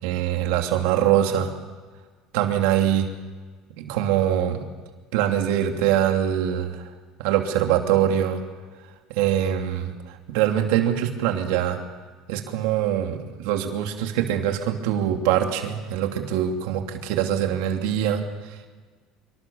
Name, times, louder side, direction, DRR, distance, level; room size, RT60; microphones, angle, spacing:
voice 1, 0.0-1.5 2.3-3.1 3.8-4.7 5.1-6.9 7.2-8.4 9.1-11.8 12.3-18.5, right 10 dB, 80° right, 3 dB, 2.9 m, -23 dB
26.0 x 25.0 x 7.2 m, 1.5 s
cardioid pair, 165°, 0 cm